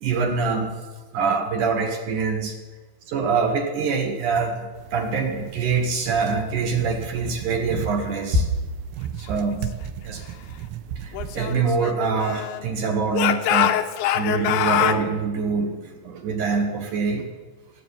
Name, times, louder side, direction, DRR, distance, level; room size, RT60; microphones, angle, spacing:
voice 1, 0.0-0.7 1.1-2.6 3.1-8.5 9.2-9.7 10.0-10.2 11.0-13.8 14.1-17.3, right 4 dB, 65° right, 3 dB, 2.1 m, -24 dB
sound 1, 4.8-11.7, right 9 dB, 85° right, 2.3 m, -36 dB
Speech / Shout, 11.1-12.7 13.1-15.0, left 11 dB, 85° left, 3.1 m, -24 dB
16.5 x 7.6 x 9.8 m, 1.3 s
omnidirectional pair, 5.2 m